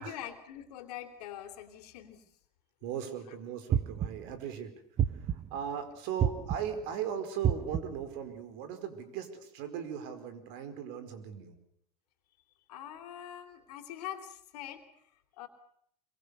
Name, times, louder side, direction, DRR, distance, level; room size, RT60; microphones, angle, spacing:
voice 1, 0.0-2.2 3.3-3.4 12.7-15.5, left 11 dB, 75° left, 8 dB, 3.2 m, -44 dB
voice 2, 2.8-4.7 5.1-11.6, right 8 dB, 60° right, 9 dB, 4.7 m, -38 dB
sound 1, 3.7-4.4 5.0-5.6 6.2-6.8 7.4-8.1, right 9 dB, 35° right, 1.2 m, -30 dB
26.0 x 22.5 x 6.8 m, 0.69 s
hypercardioid pair, 90°, 20 cm